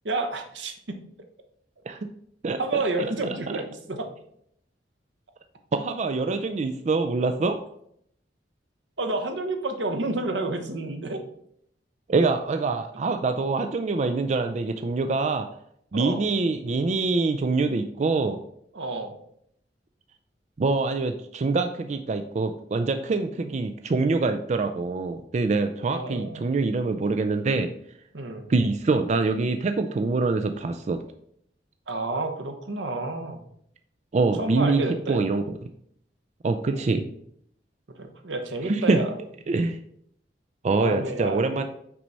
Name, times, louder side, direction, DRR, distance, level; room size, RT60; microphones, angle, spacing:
voice 1, 0.0-0.7 2.6-4.1 9.0-11.2 15.9-16.2 18.7-19.2 25.8-26.5 28.1-28.5 31.9-33.4 34.4-35.2 36.7-37.0 38.0-39.1 40.8-41.6, right 2 dB, 85° right, 6 dB, 1.0 m, -30 dB
voice 2, 5.7-7.6 12.1-15.5 15.9-18.4 20.6-27.7 28.5-31.0 34.1-35.4 36.4-37.0 38.7-39.0 39.5-39.8 40.6-41.6, right 3 dB, 40° right, 7 dB, 0.4 m, -25 dB
6.1 x 4.6 x 4.1 m, 0.69 s
head